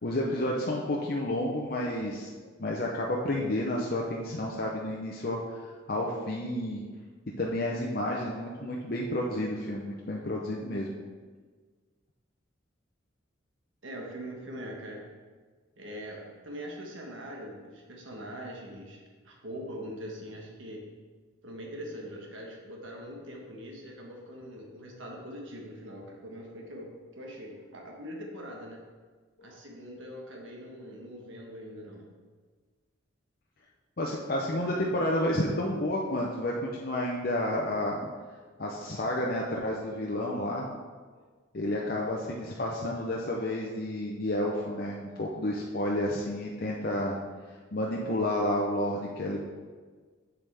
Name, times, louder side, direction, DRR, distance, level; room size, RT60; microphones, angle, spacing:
voice 1, 0.0-2.3 2.6-6.8 7.4-10.9 29.4-29.5 34.0-38.0 38.6-40.7 41.5-47.2 47.7-49.4, left 1 dB, 50° left, -2 dB, 0.7 m, -30 dB
voice 2, 13.8-15.0 15.8-20.8 21.4-28.8 29.4-32.1, equal, 70° right, 0 dB, 1.3 m, -42 dB
7.2 x 7.1 x 3.4 m, 1.5 s
head